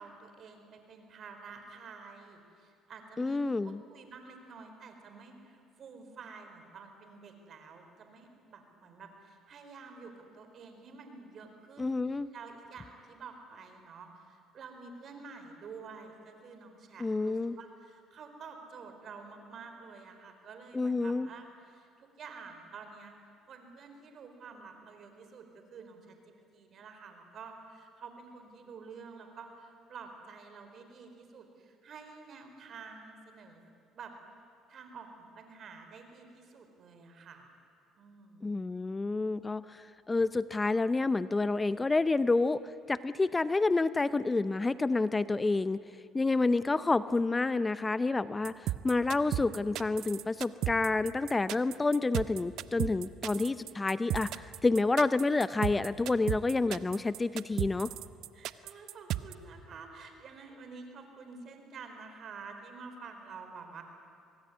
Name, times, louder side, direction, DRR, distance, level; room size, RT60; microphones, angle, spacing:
voice 1, 0.0-3.4 3.6-23.1 23.5-26.2 26.5-33.6 33.9-34.1 34.7-37.5 37.9-38.6 58.3-63.8, right 5 dB, 50° right, 6 dB, 4.5 m, -49 dB
voice 2, 3.2-3.8 11.8-12.3 17.0-17.6 20.7-21.3 38.4-42.6 42.9-45.8 46.1-57.9, left 3 dB, 20° left, 15 dB, 0.6 m, -29 dB
sound 1, 48.4-59.3, right 14 dB, 70° right, 0.8 m, -34 dB
24.5 x 20.0 x 9.9 m, 2.4 s
supercardioid pair, 90°, 0 cm